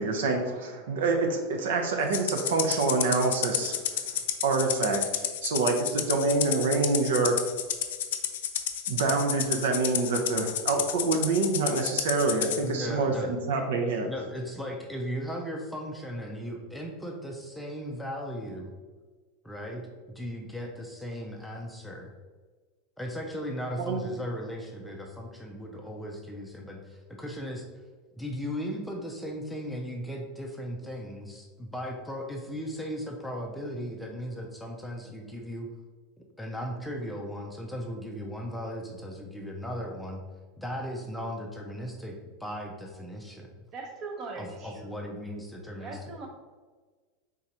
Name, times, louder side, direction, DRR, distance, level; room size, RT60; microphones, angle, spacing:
voice 1, 0.0-4.0 4.4-5.0 5.4-7.4 8.9-14.1 23.8-24.0, right 3 dB, 85° right, 3 dB, 0.8 m, -26 dB
Rattle (instrument), 2.1-12.6, left 10 dB, 85° left, 0.4 m, -31 dB
voice 2, 12.6-13.4 14.0-18.7 19.4-22.1 23.0-27.6 28.1-35.7 36.2-40.2 40.6-43.6 44.4-46.1, equal, 5° left, 0 dB, 0.5 m, -37 dB
voice 3, 43.7-44.9 45.8-46.3, right 3 dB, 30° right, 1 dB, 0.8 m, -40 dB
4.7 x 3.8 x 2.8 m, 1.4 s
supercardioid pair, 160°, 0 cm